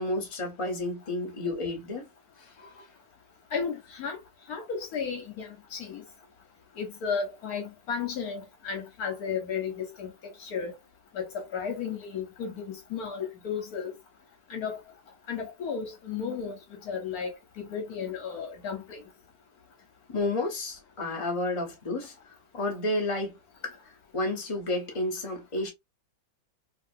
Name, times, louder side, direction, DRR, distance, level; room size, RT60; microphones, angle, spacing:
voice 1, 0.0-2.1 2.4-2.9 20.1-22.1 22.5-23.3 23.6-23.8 24.1-25.7, left 2 dB, 40° left, 0.4 m, -31 dB
voice 2, 3.5-4.2 4.5-6.0 6.8-10.7 11.1-13.9 14.5-14.8 15.3-16.6 16.9-17.3 17.6-19.0, left 6 dB, 65° left, 1.0 m, -34 dB
2.8 x 2.8 x 2.6 m
omnidirectional pair, 2.1 m